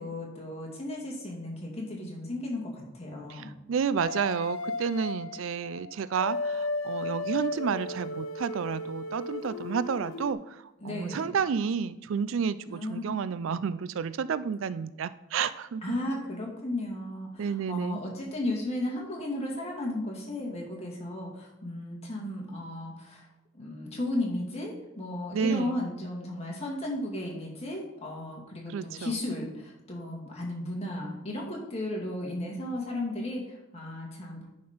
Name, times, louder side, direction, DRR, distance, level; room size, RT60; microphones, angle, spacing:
voice 1, 0.0-3.5 10.8-11.4 12.7-13.0 15.8-23.2 23.5-34.5, left 1 dB, 30° left, -2 dB, 2.0 m, -35 dB
voice 2, 3.3-16.0 17.4-18.0 25.3-25.8 28.7-29.2, right 6 dB, 75° right, 15 dB, 0.4 m, -31 dB
sound 1, 4.0-10.3, left 2 dB, 80° left, 0.6 m, -35 dB
10.5 x 4.4 x 5.1 m, 0.94 s
head